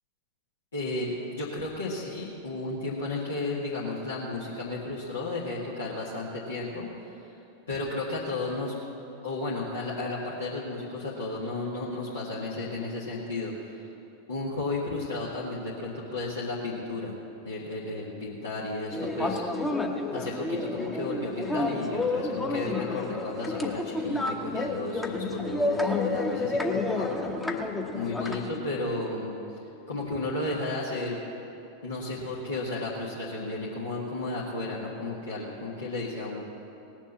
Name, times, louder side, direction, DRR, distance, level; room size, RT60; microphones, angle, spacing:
voice 1, 0.7-7.2 7.7-8.7 9.2-13.7 14.3-17.1 17.4-19.4 20.1-27.1 27.9-29.4 29.9-31.2 31.8-36.4, left 2 dB, 70° left, -6 dB, 1.7 m, -33 dB
sound 1, 18.9-28.6, left 2 dB, 10° left, 1.0 m, -30 dB
18.5 x 7.3 x 7.0 m, 2.9 s
figure-of-eight pair, 90°, 0 cm